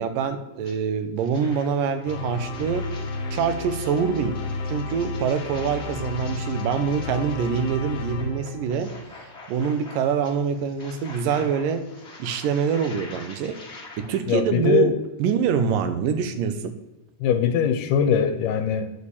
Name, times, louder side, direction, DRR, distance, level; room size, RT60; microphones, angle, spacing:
voice 1, 0.0-2.9 3.3-4.4 4.7-8.9 9.5-11.9 12.2-13.6 14.0-16.7, right 7 dB, 80° right, 9 dB, 2.4 m, -25 dB
sound 1, 0.6-0.7 1.2-14.2, left 2 dB, 40° left, 1.0 m, -45 dB
sound 2, 2.0-9.1, left 3 dB, 60° left, 1.7 m, -32 dB
voice 2, 14.3-15.0 17.2-18.9, left 7 dB, 80° left, 9 dB, 2.1 m, -21 dB
9.5 x 4.5 x 7.0 m, 1.0 s
omnidirectional pair, 4.0 m